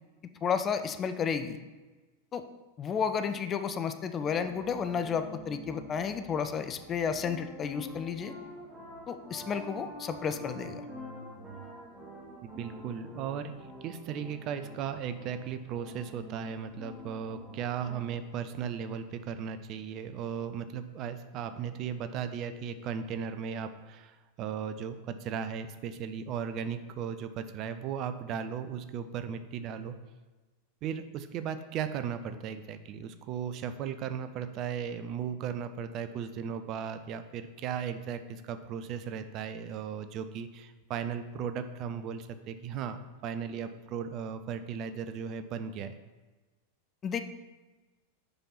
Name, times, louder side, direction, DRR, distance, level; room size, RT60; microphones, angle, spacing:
voice 1, 0.4-1.6 2.3-2.4 2.8-8.3 9.1-10.8 47.0-47.2, left 6 dB, 25° left, 9 dB, 0.5 m, -32 dB
sound 1, 4.2-18.2, equal, 10° right, 1.8 m, -47 dB
voice 2, 12.6-30.0 30.8-43.0 43.2-46.0, right 7 dB, 35° right, 9 dB, 0.5 m, -36 dB
6.9 x 5.3 x 5.6 m, 1.2 s
figure-of-eight pair, 90°, 0 cm